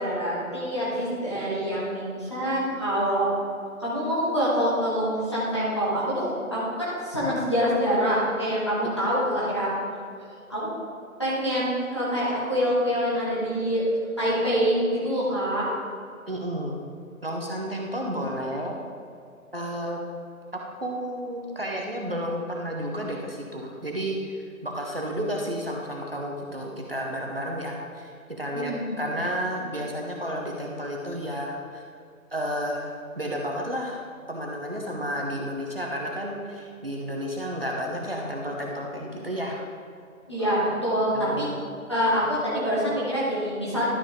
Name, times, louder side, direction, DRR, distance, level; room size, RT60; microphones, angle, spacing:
voice 1, 0.0-3.3 3.8-9.7 10.5-10.7 11.2-13.9 14.2-15.7 28.5-28.9 40.3-41.5 41.9-43.8, equal, 20° left, -9 dB, 1.6 m, -25 dB
voice 2, 16.3-16.8 17.2-18.8 19.5-20.0 20.5-31.8 32.3-34.0 34.3-39.6 41.1-41.6, equal, 45° right, -1 dB, 1.0 m, -32 dB
12.0 x 5.7 x 3.7 m, 2.5 s
figure-of-eight pair, 175°, 42 cm